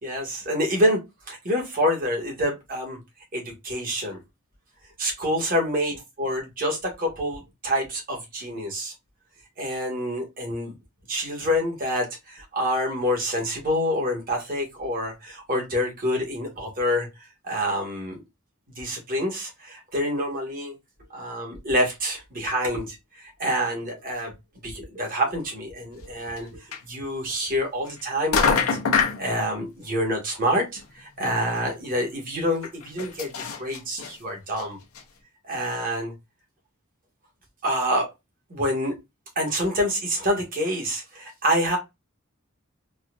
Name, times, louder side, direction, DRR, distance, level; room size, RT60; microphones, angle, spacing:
voice 1, 0.0-1.0 1.3-3.0 3.3-4.2 5.0-8.9 9.6-10.7 11.1-17.1 17.4-18.2 18.8-20.8 21.1-24.3 24.6-28.6 29.2-34.8 35.4-36.1 37.6-38.1 38.5-38.9 39.3-41.8, equal, 45° right, 1 dB, 1.5 m, -27 dB
sound 1, 26.4-26.5 26.7-26.8 27.9-28.0 28.3-29.2 30.8-30.9 31.2-31.3 31.6-31.7 32.6-34.1 34.6-34.7 34.9-35.0, left 5 dB, 90° left, 0.7 m, -24 dB
4.1 x 2.4 x 2.5 m, 0.21 s
head